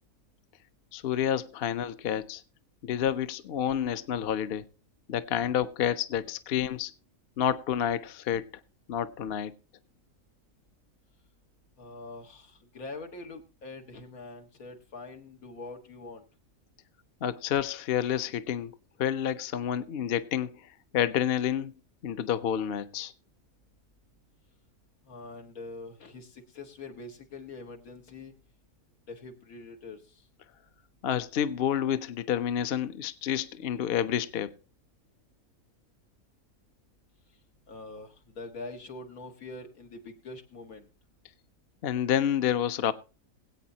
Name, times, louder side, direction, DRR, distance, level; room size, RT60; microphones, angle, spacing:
voice 1, 0.9-2.4 2.8-4.7 5.1-6.9 7.4-8.4 8.9-9.5 17.2-18.7 19.0-21.7 22.0-23.1 31.0-34.5 41.8-42.9, left 9 dB, 55° left, 0.8 m, -29 dB
voice 2, 11.8-16.2 25.1-28.3 29.1-30.2 37.7-40.9, left 3 dB, 85° left, 2.1 m, -44 dB
22.0 x 8.5 x 2.8 m
omnidirectional pair, 1.5 m